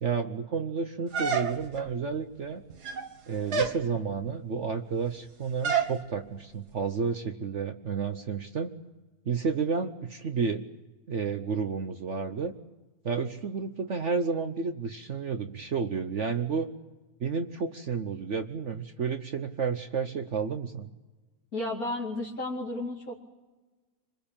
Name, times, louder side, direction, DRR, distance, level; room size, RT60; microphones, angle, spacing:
voice 1, 0.0-2.6 3.3-8.7 9.3-10.6 11.1-12.5 13.0-16.7 17.2-20.9, right 5 dB, 50° right, 7 dB, 1.2 m, -31 dB
sound 1, 1.1-1.9 2.7-3.1 3.5-3.8 5.6-6.0, right 5 dB, 75° right, 2.1 m, -28 dB
voice 2, 21.5-23.2, left 2 dB, 60° left, -2 dB, 3.1 m, -33 dB
26.0 x 21.5 x 8.8 m, 1.2 s
omnidirectional pair, 1.7 m